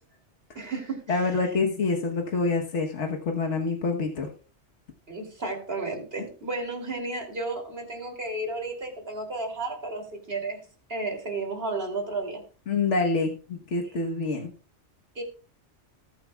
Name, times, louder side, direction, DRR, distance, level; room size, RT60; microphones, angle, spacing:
voice 1, 0.5-1.3 5.1-12.4 13.8-13.9 15.1-15.2, right 2 dB, 55° right, 3.3 m, -33 dB
voice 2, 1.1-4.3 12.7-14.5, left 3 dB, 75° left, 1.6 m, -26 dB
19.0 x 8.1 x 2.4 m
omnidirectional pair, 1.2 m